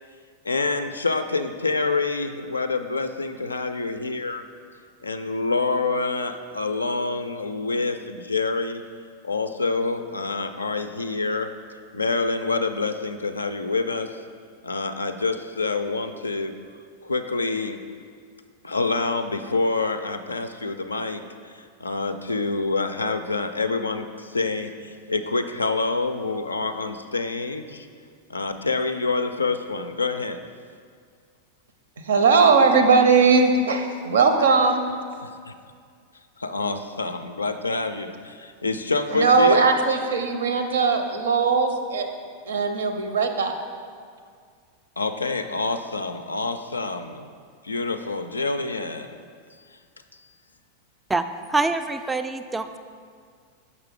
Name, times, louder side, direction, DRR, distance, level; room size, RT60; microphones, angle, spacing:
voice 1, 0.4-4.4 5.0-8.8 9.2-11.5 11.9-14.2 14.6-16.6 17.0-17.8 18.6-27.9 28.3-30.5 35.2-35.5 36.4-39.7 45.0-47.3 47.6-49.2 49.7-49.8, left 3 dB, 80° left, 9 dB, 0.3 m, -27 dB
voice 2, 32.1-34.8 39.1-42.1 42.5-43.5, right 4 dB, 65° right, 7 dB, 0.6 m, -19 dB
voice 3, 51.5-52.8, right 3 dB, 10° right, 9 dB, 0.3 m, -25 dB
6.6 x 5.9 x 3.5 m, 2.1 s
figure-of-eight pair, 90°, 0 cm